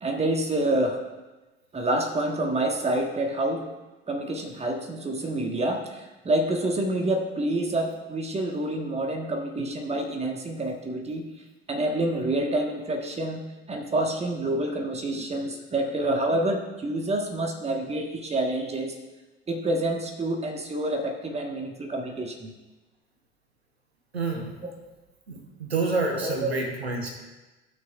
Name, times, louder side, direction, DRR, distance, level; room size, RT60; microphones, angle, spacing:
voice 1, 0.0-1.0 1.7-3.7 4.1-11.2 11.7-18.9 19.5-22.5 24.6-24.8 26.2-26.6, right 1 dB, 20° right, 3 dB, 1.5 m, -28 dB
voice 2, 24.1-24.5 25.3-27.1, right 3 dB, 85° right, 3 dB, 1.1 m, -28 dB
16.0 x 6.3 x 2.5 m, 1.1 s
figure-of-eight pair, 60°, 31 cm